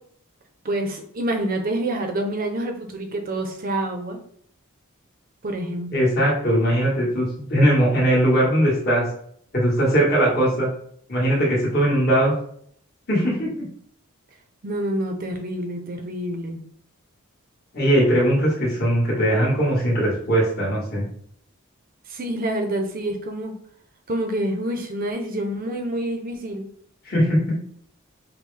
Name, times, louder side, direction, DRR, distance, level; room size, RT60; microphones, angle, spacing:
voice 1, 0.6-4.2 5.4-5.9 14.6-16.6 22.1-23.5 24.1-26.7, right 1 dB, 40° right, 4 dB, 0.6 m, -27 dB
voice 2, 5.9-9.0 9.5-10.7 11.1-12.3 13.1-13.5 17.7-21.0 27.0-27.5, right 1 dB, 45° left, -5 dB, 1.6 m, -20 dB
5.4 x 2.2 x 3.3 m, 0.63 s
head